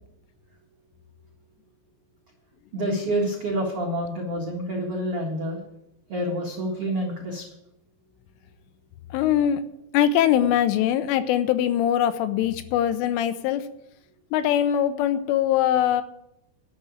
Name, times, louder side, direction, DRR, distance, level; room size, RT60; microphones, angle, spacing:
voice 1, 2.7-5.6 6.1-7.4, equal, 70° right, -1 dB, 1.3 m, -28 dB
voice 2, 9.1-9.6 9.9-13.7 14.3-16.0, left 10 dB, 80° left, 11 dB, 3.0 m, -22 dB
12.0 x 7.4 x 8.5 m, 0.81 s
omnidirectional pair, 6.0 m